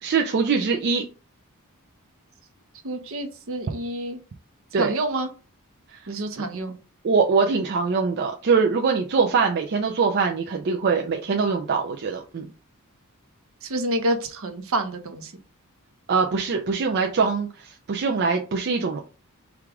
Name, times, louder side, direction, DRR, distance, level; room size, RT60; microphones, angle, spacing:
voice 1, 0.0-1.1 4.7-4.9 6.4-6.5 7.0-12.4 16.1-19.0, right 5 dB, 50° right, 2 dB, 0.4 m, -23 dB
voice 2, 2.8-4.2 4.8-5.3 6.1-6.8 13.6-15.3, right 1 dB, 65° right, 6 dB, 0.8 m, -28 dB
4.7 x 2.4 x 3.5 m, 0.35 s
head